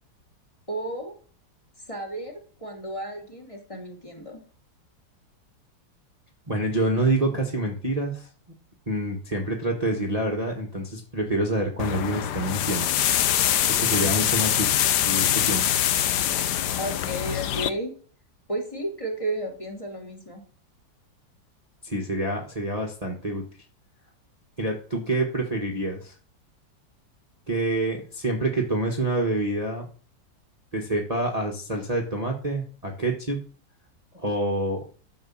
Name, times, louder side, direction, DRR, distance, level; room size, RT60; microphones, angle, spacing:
voice 1, 0.7-1.1 1.9-4.4 16.8-17.9 18.5-20.4, right 1 dB, 15° left, 2 dB, 2.7 m, -33 dB
voice 2, 6.5-8.3 8.9-12.9 13.8-15.9 21.8-23.4 24.6-26.1 27.5-29.9 30.7-33.4 34.1-34.8, right 1 dB, 20° right, 0 dB, 1.5 m, -27 dB
sound 1, 11.8-17.7, left 11 dB, 70° left, 1.3 m, -24 dB
12.5 x 5.3 x 7.2 m, 0.42 s
omnidirectional pair, 2.0 m